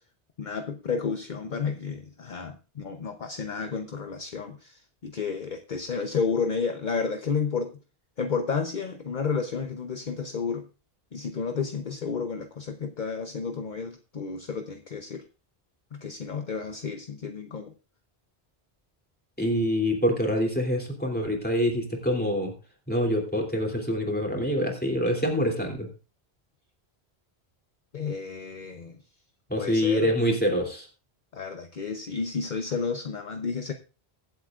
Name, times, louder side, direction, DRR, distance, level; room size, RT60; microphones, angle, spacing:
voice 1, 0.4-7.8 8.2-10.7 11.1-15.3 15.9-17.7 27.9-29.0 29.6-30.1 31.3-33.7, left 5 dB, 50° left, 6 dB, 0.9 m, -31 dB
voice 2, 19.4-22.5 22.9-25.9 29.5-30.9, equal, 10° left, 0 dB, 3.0 m, -25 dB
23.5 x 8.0 x 2.5 m, 0.32 s
omnidirectional pair, 1.0 m